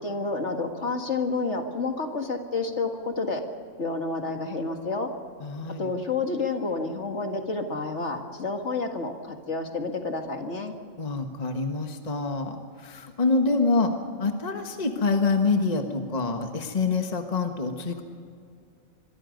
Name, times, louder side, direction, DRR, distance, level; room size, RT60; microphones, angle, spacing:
voice 1, 0.0-3.4 3.8-5.1 5.8-10.7, left 3 dB, 60° left, 4 dB, 2.2 m, -29 dB
voice 2, 5.4-5.9 11.0-13.9 14.2-18.0, left 3 dB, 30° left, 5 dB, 1.5 m, -26 dB
26.0 x 22.5 x 5.3 m, 2.3 s
omnidirectional pair, 1.4 m